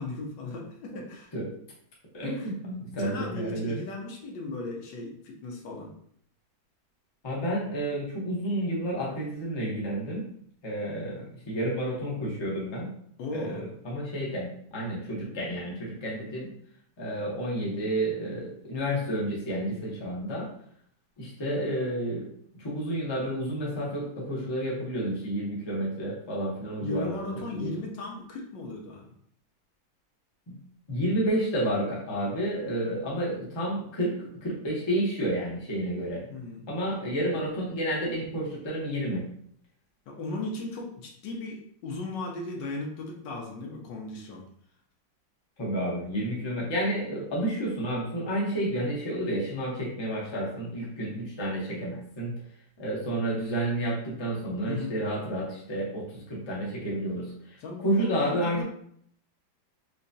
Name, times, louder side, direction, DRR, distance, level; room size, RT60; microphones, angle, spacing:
voice 1, 0.0-1.3 2.4-2.5 3.0-5.9 13.2-13.6 26.8-29.1 36.3-36.7 40.1-44.4 54.7-55.0 57.6-57.9 58.2-58.6, left 2 dB, 70° left, 0 dB, 1.3 m, -36 dB
voice 2, 2.1-3.8 7.2-10.2 10.6-12.9 13.3-16.5 17.0-20.5 21.2-22.3 22.6-27.7 30.5-30.6 30.9-36.3 36.7-39.2 45.6-52.3 52.8-58.6, right 1 dB, 35° left, -5 dB, 0.4 m, -30 dB
4.8 x 2.2 x 2.6 m, 0.65 s
omnidirectional pair, 2.1 m